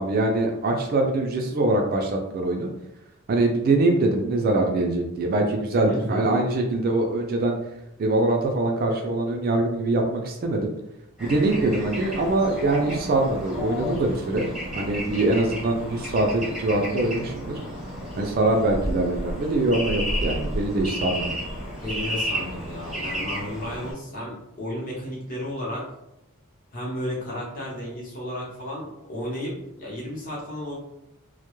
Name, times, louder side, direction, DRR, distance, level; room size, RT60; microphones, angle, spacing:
voice 1, 0.0-2.7 3.3-7.6 8.0-10.7 11.2-14.5 14.8-17.5 18.2-21.3, right 2 dB, 40° right, 2 dB, 0.3 m, -23 dB
voice 2, 5.8-6.3 21.8-25.8 26.7-30.7, left 1 dB, 40° left, -4 dB, 0.7 m, -33 dB
Bird / Traffic noise roadway noise, 11.2-23.9, equal, 5° right, 0.6 m, -32 dB
2.1 x 2.0 x 2.9 m, 0.87 s
head